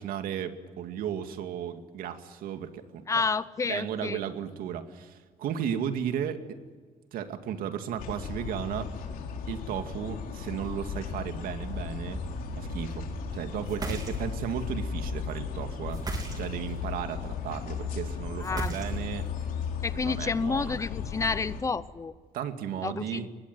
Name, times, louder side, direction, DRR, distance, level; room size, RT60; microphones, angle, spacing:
voice 1, 0.0-3.2 3.7-6.4 7.1-8.9 9.5-12.2 12.6-13.1 13.3-16.0 16.4-19.3 19.9-20.8 22.3-23.3, right 9 dB, 90° right, 8 dB, 2.3 m, -34 dB
voice 2, 3.1-4.2 18.4-18.7 19.8-22.1 22.8-23.3, left 4 dB, 20° left, 16 dB, 0.7 m, -30 dB
sound 1, 8.0-21.6, left 5 dB, 80° left, 3.7 m, -36 dB
sound 2, 13.7-14.5 15.9-16.8 18.4-19.3, right 2 dB, 25° right, 3.7 m, -35 dB
24.5 x 20.5 x 9.5 m, 1.5 s
cardioid pair, 170°, 15 cm